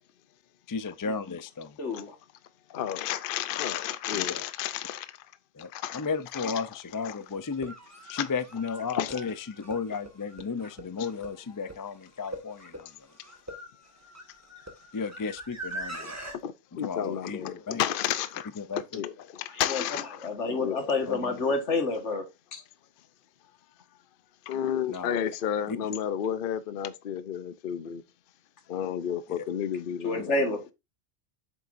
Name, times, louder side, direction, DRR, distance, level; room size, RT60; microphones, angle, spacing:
voice 1, 0.7-1.8 4.1-4.2 5.5-7.7 8.1-12.9 14.9-16.1 16.8-17.8 18.6-18.8 21.1-21.4 24.9-25.2 25.7-25.8 29.4-29.5 30.2-30.3, left 5 dB, 30° left, 0.3 m, -34 dB
voice 2, 1.8-2.2 19.5-19.8 20.2-22.6 30.0-30.6, left 3 dB, 80° left, 1.9 m, -29 dB
voice 3, 2.7-5.2 5.7-6.6 7.0-7.2 8.1-8.3 8.9-9.2 11.0-11.1 16.0-16.1 16.4-18.5 18.8-20.3 20.6-20.9 24.5-28.0 28.7-30.4, left 10 dB, 55° left, 0.7 m, -32 dB
sound 1, 6.3-6.4 7.4-16.4, right 1 dB, 15° right, 1.7 m, -43 dB
8.3 x 6.9 x 2.6 m
omnidirectional pair, 1.2 m